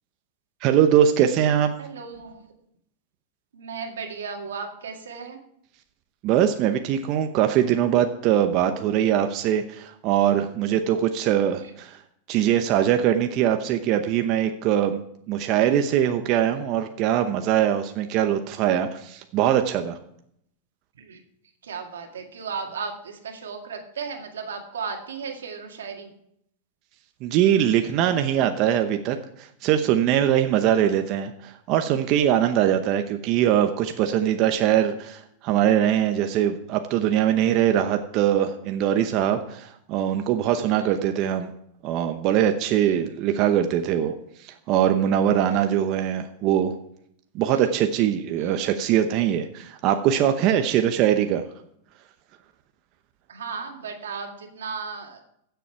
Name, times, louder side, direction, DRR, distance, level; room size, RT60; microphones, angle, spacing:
voice 1, 0.6-1.7 6.2-12.0 12.3-15.0 15.3-20.0 27.2-41.5 41.8-44.1 44.4-46.7 47.3-51.4, right 10 dB, 45° right, 7 dB, 0.8 m, -22 dB
voice 2, 1.8-2.4 3.5-5.4 21.0-21.2 21.6-26.1 47.5-47.6 48.4-48.5 53.3-55.2, right 5 dB, 90° right, 3 dB, 2.0 m, -35 dB
15.0 x 6.9 x 4.6 m, 0.72 s
hypercardioid pair, 120°, 0 cm